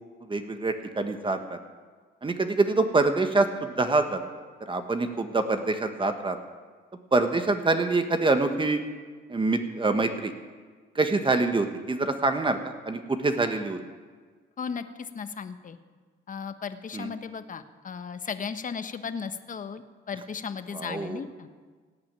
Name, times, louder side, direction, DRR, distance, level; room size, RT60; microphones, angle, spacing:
voice 1, 0.2-1.6 2.2-4.2 4.6-6.4 7.1-8.8 9.3-10.3 10.9-13.8 16.9-17.1 20.7-21.2, right 3 dB, 25° right, 7 dB, 1.4 m, -25 dB
voice 2, 14.6-15.8 16.3-21.5, left 6 dB, 40° left, 10 dB, 1.1 m, -36 dB
17.0 x 8.7 x 8.9 m, 1.5 s
cardioid pair, 90°, 20 cm